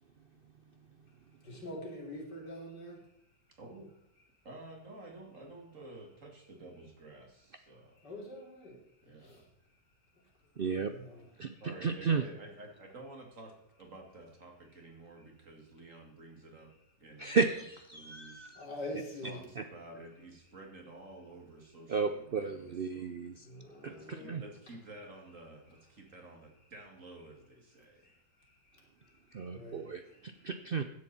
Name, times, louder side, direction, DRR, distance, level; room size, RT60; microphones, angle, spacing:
voice 1, 1.4-3.0 8.0-8.8 9.2-9.4 10.7-11.2 18.6-19.4 23.4-24.4 29.5-30.2, left 1 dB, 70° left, -1 dB, 4.0 m, -44 dB
voice 2, 3.6-3.9 4.4-8.0 9.1-9.5 11.6-16.7 17.0-17.4 17.9-18.5 19.2-23.2 23.8-28.2, right 2 dB, 45° right, 3 dB, 2.6 m, -51 dB
voice 3, 10.6-10.9 11.4-11.5 11.8-12.2 17.2-18.6 19.6-19.7 21.9-23.5 24.3-24.4 29.3-30.8, right 5 dB, 75° right, 8 dB, 0.5 m, -33 dB
16.0 x 11.0 x 4.2 m, 0.77 s
omnidirectional pair, 1.9 m